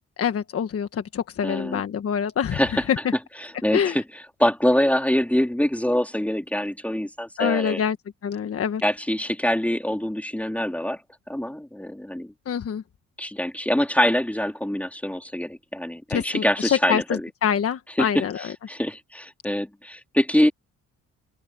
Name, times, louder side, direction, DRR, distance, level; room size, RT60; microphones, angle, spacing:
voice 1, 0.2-2.6 3.7-3.9 7.4-8.0 8.2-8.8 12.5-12.8 16.1-17.0 17.4-18.3, left 8 dB, 50° left, 1.3 m, -25 dB
voice 2, 1.4-1.8 2.5-2.9 3.4-7.8 8.8-11.0 11.3-12.3 13.2-17.3 18.0-20.5, equal, 5° left, 3.2 m, -24 dB
open air
cardioid pair, 90°, 30 cm